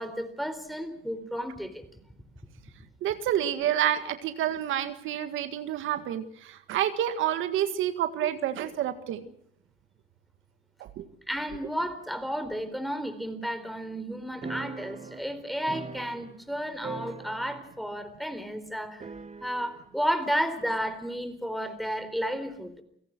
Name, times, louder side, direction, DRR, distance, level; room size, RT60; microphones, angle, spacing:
voice 1, 0.0-1.9 8.2-8.3 11.3-19.0 19.4-22.7, equal, ahead, 10 dB, 4.1 m, -32 dB
voice 2, 3.0-9.3 10.8-11.0, right 11 dB, 85° right, 10 dB, 1.8 m, -29 dB
sound 1, 14.4-16.5 16.8-17.8 18.1-18.2 19.0-19.8, right 4 dB, 35° right, 1.7 m, -41 dB
29.5 x 17.5 x 6.1 m, 0.71 s
cardioid pair, 90°, 20 cm